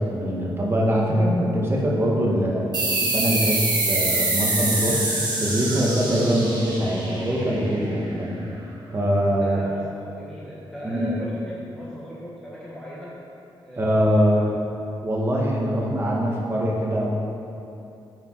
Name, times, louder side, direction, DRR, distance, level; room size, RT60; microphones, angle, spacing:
voice 1, 0.0-2.7 3.0-5.0 5.4-8.4 8.9-9.6 10.8-11.1 13.8-14.5 15.0-17.1, equal, 25° right, -3 dB, 1.8 m, -23 dB
sound 1, 2.7-7.9, right 2 dB, 50° right, 1.7 m, -25 dB
voice 2, 9.4-13.2 13.6-14.4, equal, 5° left, -8 dB, 1.4 m, -38 dB
8.8 x 6.3 x 4.8 m, 2.7 s
cardioid pair, 100°, 9 cm